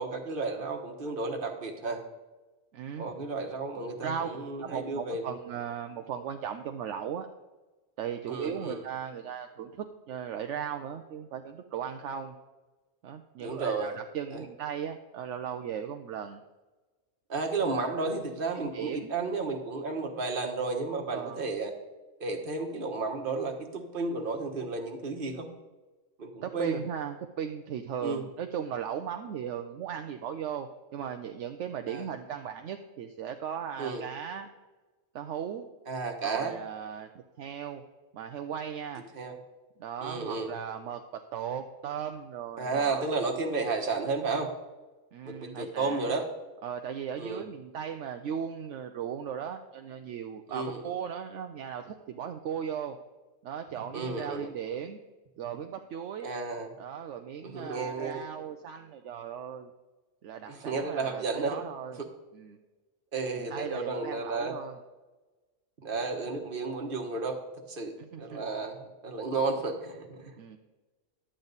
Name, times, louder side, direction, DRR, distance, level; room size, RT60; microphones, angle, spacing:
voice 1, 0.0-2.0 3.0-5.4 8.3-8.8 13.4-13.9 14.3-14.4 17.3-21.7 22.2-25.5 26.2-26.8 28.0-28.2 31.9-32.1 33.8-34.0 35.9-36.5 39.1-39.4 40.0-40.5 42.6-44.5 45.2-46.3 47.2-47.4 50.5-50.8 53.9-54.5 56.2-56.7 57.4-58.2 60.5-61.6 62.0-62.1 63.1-64.6 65.8-67.4 67.7-70.4, right 3 dB, 45° right, 3 dB, 1.4 m, -32 dB
voice 2, 2.7-3.1 4.0-4.3 4.6-7.3 8.0-12.4 13.0-16.4 17.7-18.1 18.5-19.1 21.1-21.4 26.4-34.5 35.1-35.7 36.2-37.1 37.4-37.8 38.1-39.0 39.8-43.1 45.1-46.1 46.6-53.0 53.4-55.0 55.4-56.3 56.8-59.7 60.2-62.0 62.3-62.6 63.4-64.8 68.0-68.4 70.4-70.6, right 8 dB, 70° right, 6 dB, 0.9 m, -37 dB
11.5 x 8.8 x 4.0 m, 1.2 s
omnidirectional pair, 1.4 m